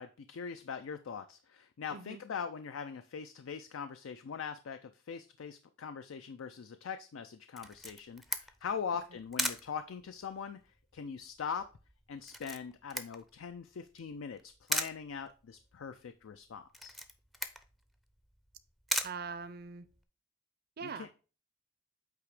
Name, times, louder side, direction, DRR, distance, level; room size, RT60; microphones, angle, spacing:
voice 1, 0.0-11.7 12.1-16.9 20.8-21.1, left 6 dB, 75° left, 0.4 m, -42 dB
Camera, 7.6-20.0, equal, ahead, 0.5 m, -40 dB
voice 2, 19.0-19.9 20.8-21.2, right 5 dB, 50° right, 0.5 m, -42 dB
8.3 x 2.9 x 4.8 m
head